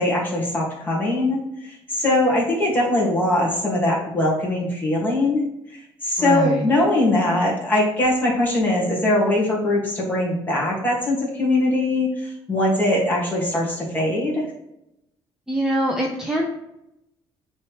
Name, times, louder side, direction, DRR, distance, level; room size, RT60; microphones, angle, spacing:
voice 1, 0.0-5.5 6.0-14.5, left 1 dB, 20° left, -4 dB, 1.9 m, -21 dB
voice 2, 6.2-6.7 15.5-16.5, right 1 dB, 5° right, -1 dB, 0.6 m, -23 dB
8.9 x 3.1 x 3.4 m, 0.85 s
cardioid pair, 145°, 10 cm